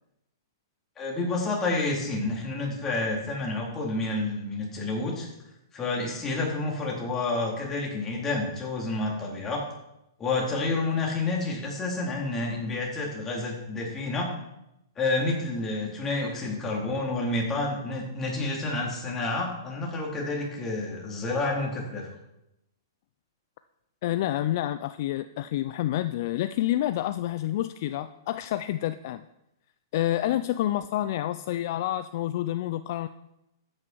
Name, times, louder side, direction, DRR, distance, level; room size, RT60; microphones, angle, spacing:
voice 1, 1.0-5.3 5.7-9.6 10.2-14.3 15.0-22.1, left 2 dB, 20° left, -2 dB, 4.1 m, -29 dB
voice 2, 24.0-29.2 29.9-33.1, left 13 dB, 55° left, 13 dB, 0.5 m, -28 dB
13.5 x 9.7 x 4.7 m, 0.87 s
hypercardioid pair, 120°, 2 cm